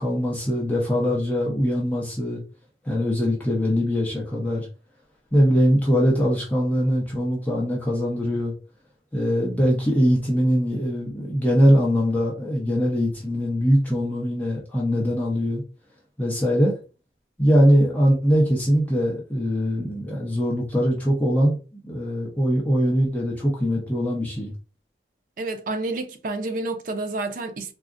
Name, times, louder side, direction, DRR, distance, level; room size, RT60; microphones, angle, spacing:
voice 1, 0.0-2.4 2.8-4.7 5.3-8.5 9.1-15.6 16.2-16.7 17.4-24.5, equal, 10° left, 0.6 m, -22 dB
voice 2, 25.4-27.7, right 2 dB, 45° right, 0.4 m, -29 dB
3.6 x 2.0 x 2.4 m
head